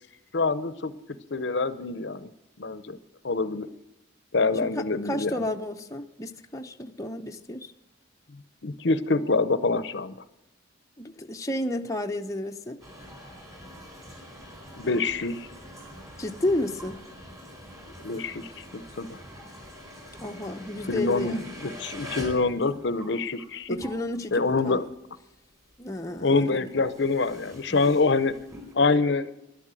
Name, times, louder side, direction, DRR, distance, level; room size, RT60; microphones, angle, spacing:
voice 1, 0.3-0.9 1.3-2.3 2.6-3.0 3.2-3.7 4.3-5.3 8.6-10.2 14.8-15.5 18.0-19.2 20.9-23.8 24.3-24.8 26.2-28.3 28.7-29.3, left 3 dB, 60° left, 0.7 m, -25 dB
voice 2, 4.6-7.7 11.0-12.8 16.2-17.0 20.2-21.5 23.7-24.9 25.8-26.7, left 1 dB, 15° left, 0.7 m, -32 dB
sound 1, 12.8-25.1 25.4-28.7, equal, 15° right, 4.4 m, -45 dB
12.0 x 11.5 x 7.6 m
head